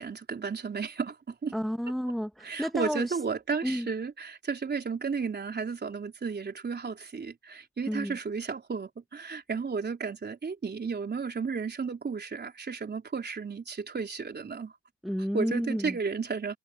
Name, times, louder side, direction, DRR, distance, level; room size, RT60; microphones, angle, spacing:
voice 1, 0.0-1.5 2.4-14.7 15.3-16.6, right 5 dB, 35° right, 4.0 m, -33 dB
voice 2, 1.5-3.2 3.6-3.9 7.9-8.2 15.0-16.0, equal, ahead, 1.1 m, -31 dB
cardioid pair, 90°, 30 cm